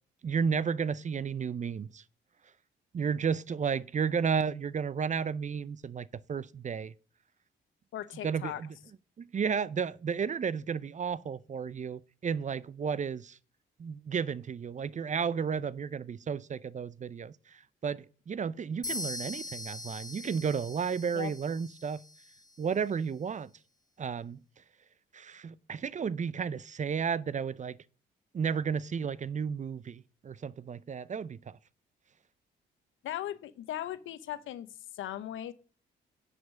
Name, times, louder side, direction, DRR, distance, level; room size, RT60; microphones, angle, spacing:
voice 1, 0.2-2.0 2.9-6.9 8.2-8.7 9.2-13.4 13.8-22.0 22.6-23.5 24.0-24.4 25.1-27.8 28.3-31.6, right 6 dB, 35° right, 0.5 m, -33 dB
voice 2, 7.9-8.6 21.1-21.3 33.0-34.7 34.9-35.5, left 12 dB, 75° left, 0.8 m, -38 dB
sound 1, 18.8-22.6, left 2 dB, 15° left, 1.5 m, -42 dB
10.5 x 5.1 x 6.2 m
supercardioid pair, 60°, 21 cm